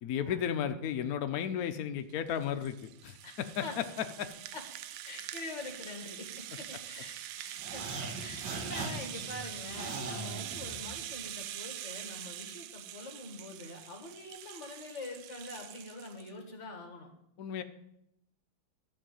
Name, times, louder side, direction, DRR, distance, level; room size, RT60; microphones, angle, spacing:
voice 1, 0.0-3.8 4.2-4.3 17.4-17.6, left 9 dB, 85° left, 8 dB, 0.8 m, -34 dB
Rattle (instrument), 2.1-16.3, right 12 dB, 80° right, 0.9 m, -44 dB
voice 2, 3.2-3.8 4.5-4.6 5.0-17.1, left 2 dB, 35° left, 2 dB, 1.9 m, -45 dB
sound 1, 7.6-11.3, right 3 dB, 65° right, 2.1 m, -40 dB
12.5 x 4.6 x 7.6 m, 0.80 s
omnidirectional pair, 2.3 m